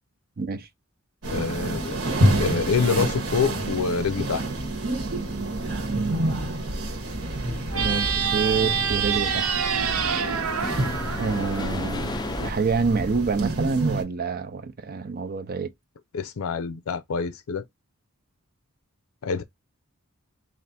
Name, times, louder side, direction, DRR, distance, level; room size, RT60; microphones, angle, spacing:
voice 1, 0.4-0.7 7.8-9.5 11.2-12.1 12.4-15.7, right 4 dB, 45° right, 0.6 m, -27 dB
sound 1, 1.2-14.0, right 1 dB, 65° right, 1.2 m, -28 dB
voice 2, 1.3-4.4 7.7-7.9 16.1-17.6 19.2-19.4, left 5 dB, 75° left, 0.5 m, -26 dB
sound 2, 5.0-12.5, left 2 dB, 20° left, 0.4 m, -37 dB
sound 3, 7.7-12.1, right 7 dB, 80° right, 0.7 m, -27 dB
3.3 x 2.5 x 4.1 m
head